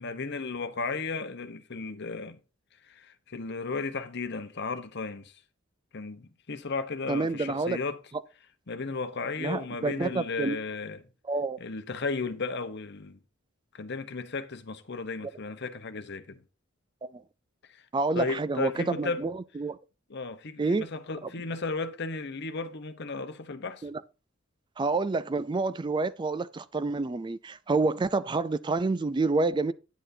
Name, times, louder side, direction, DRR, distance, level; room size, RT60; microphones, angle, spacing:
voice 1, 0.0-2.4 2.8-5.3 5.9-8.0 8.7-11.0 11.6-13.2 13.7-16.4 17.7-17.8 18.1-19.2 20.1-23.9, left 4 dB, 55° left, 0.9 m, -34 dB
voice 2, 7.1-7.8 9.4-10.6 11.3-11.6 17.0-17.2 17.9-19.8 20.6-20.9 23.8-24.0 24.8-29.7, right 3 dB, 20° right, 0.3 m, -28 dB
9.3 x 8.9 x 2.7 m
head